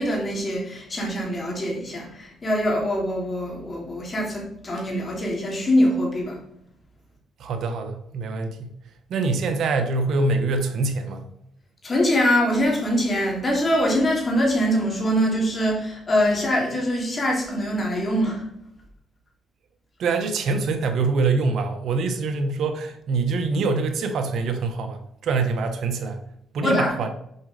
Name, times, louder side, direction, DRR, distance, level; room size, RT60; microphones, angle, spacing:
voice 1, 0.0-6.4 11.8-18.4 26.6-26.9, equal, 35° left, -1 dB, 3.0 m, -23 dB
voice 2, 7.4-8.7 9.1-11.3 20.0-26.2 26.5-27.1, right 3 dB, 70° right, 6 dB, 1.1 m, -24 dB
7.1 x 5.0 x 5.0 m, 0.74 s
cardioid pair, 90°, 0 cm